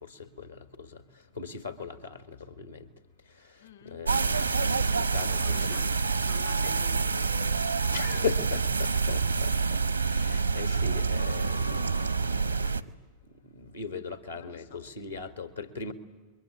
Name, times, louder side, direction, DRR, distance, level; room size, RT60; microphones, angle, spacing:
voice 1, 0.0-1.0 1.3-2.9 3.3-5.9 7.9-9.8 10.1-12.9 13.3-15.9, left 5 dB, 85° left, 10 dB, 2.0 m, -39 dB
voice 2, 3.6-4.0 5.0-5.9 6.2-7.3 14.3-14.8, left 9 dB, 60° left, 9 dB, 1.7 m, -48 dB
sound 1, 4.1-12.8, right 4 dB, 85° right, 0.8 m, -27 dB
29.0 x 22.5 x 9.0 m, 1.2 s
figure-of-eight pair, 90°, 0 cm